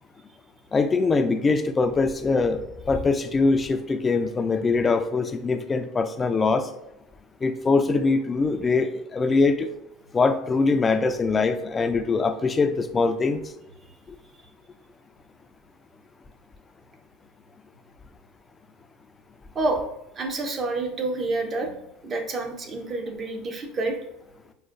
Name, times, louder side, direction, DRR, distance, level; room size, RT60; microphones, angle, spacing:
voice 1, 0.7-6.7 7.4-9.7 10.1-13.4, left 4 dB, 25° left, 10 dB, 0.3 m, -23 dB
voice 2, 20.2-21.7 22.0-24.0, right 2 dB, 35° right, 4 dB, 0.7 m, -28 dB
4.8 x 2.2 x 2.4 m, 0.86 s
hypercardioid pair, 85°, 0 cm